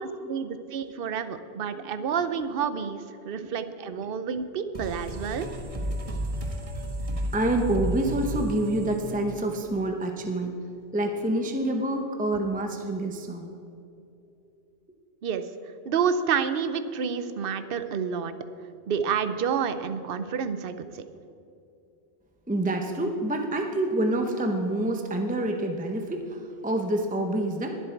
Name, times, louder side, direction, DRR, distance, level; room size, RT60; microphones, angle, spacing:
voice 1, 0.0-5.5 15.2-15.4 15.9-18.3 18.9-20.9, right 7 dB, 60° right, 11 dB, 0.9 m, -29 dB
voice 2, 1.7-2.1 3.4-3.5 4.0-4.1 7.3-10.5 10.9-13.5 22.5-27.7, right 1 dB, 10° right, 4 dB, 0.8 m, -27 dB
sound 1, 4.7-10.0, right 1 dB, 30° right, 1.4 m, -33 dB
20.5 x 7.7 x 4.6 m, 2.8 s
omnidirectional pair, 1.1 m